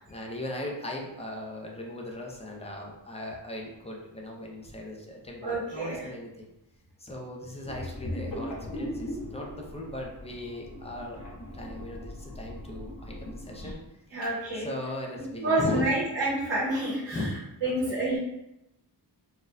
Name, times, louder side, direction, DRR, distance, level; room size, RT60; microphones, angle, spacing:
voice 1, 0.1-6.5 7.0-11.2 11.5-13.8 14.5-15.9 17.1-17.3 17.6-18.0, left 1 dB, 15° left, -1 dB, 0.5 m, -38 dB
voice 2, 5.4-6.1 13.6-13.7 14.1-14.7 15.4-17.3 17.6-18.2, right 1 dB, 80° right, -7 dB, 1.2 m, -28 dB
sound 1, 7.6-13.7, left 1 dB, 50° left, 0.8 m, -39 dB
4.2 x 2.3 x 2.5 m, 0.88 s
wide cardioid pair, 165°, 42 cm